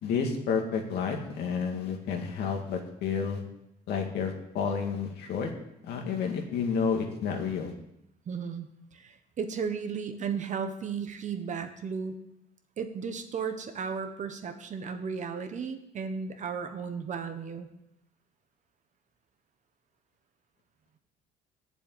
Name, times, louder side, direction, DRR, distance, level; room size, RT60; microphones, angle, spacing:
voice 1, 0.0-3.4 3.9-5.5 5.9-7.7, left 6 dB, 75° left, 2 dB, 2.2 m, -30 dB
voice 2, 8.3-12.1 12.8-17.7, right 6 dB, 45° right, 7 dB, 1.3 m, -35 dB
8.7 x 7.1 x 8.8 m, 0.81 s
cardioid pair, 110°, 17 cm